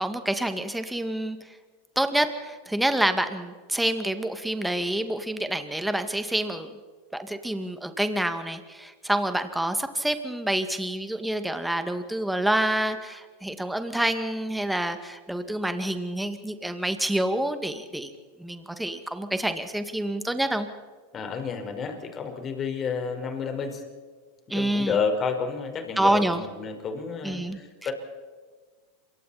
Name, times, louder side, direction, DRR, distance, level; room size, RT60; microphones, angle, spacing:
voice 1, 0.0-1.6 2.0-6.7 7.1-18.1 18.4-20.7 24.5-25.0 26.0-26.4 27.2-27.6, right 1 dB, 5° right, 8 dB, 2.1 m, -27 dB
voice 2, 21.1-23.8 24.5-27.9, left 5 dB, 30° left, 5 dB, 5.0 m, -30 dB
27.0 x 23.5 x 4.3 m, 1.5 s
hypercardioid pair, 110°, 0 cm